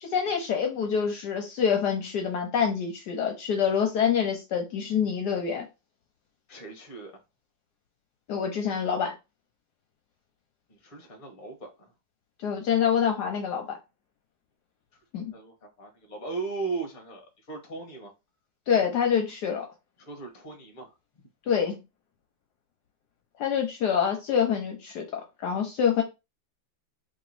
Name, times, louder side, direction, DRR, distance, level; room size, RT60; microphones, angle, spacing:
voice 1, 0.0-5.6 8.3-9.1 12.4-13.8 15.1-15.3 18.7-19.7 21.5-21.8 23.4-26.0, left 7 dB, 70° left, 1.2 m, -26 dB
voice 2, 6.5-7.1 10.7-11.9 15.3-18.1 20.0-20.9, right 4 dB, 30° left, 1.1 m, -37 dB
3.3 x 2.9 x 3.9 m
omnidirectional pair, 2.0 m